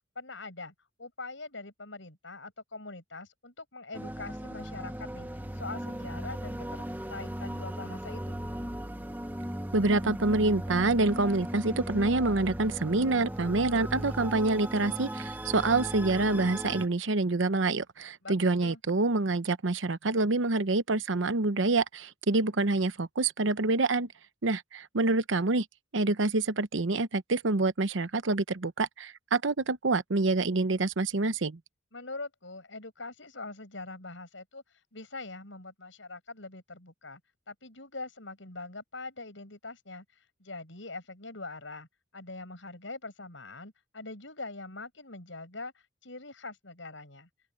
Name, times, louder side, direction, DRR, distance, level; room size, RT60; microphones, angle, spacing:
voice 1, 0.2-5.3 5.6-6.8 7.1-8.4 18.2-18.8 31.9-34.6 34.9-37.2 37.5-41.9 42.1-47.3, left 3 dB, 80° left, 7.1 m, -43 dB
sound 1, 3.9-16.9, right 1 dB, 10° right, 1.1 m, -37 dB
voice 2, 9.7-24.1 24.4-25.7 25.9-31.6, right 3 dB, 85° right, 0.9 m, -27 dB
open air
head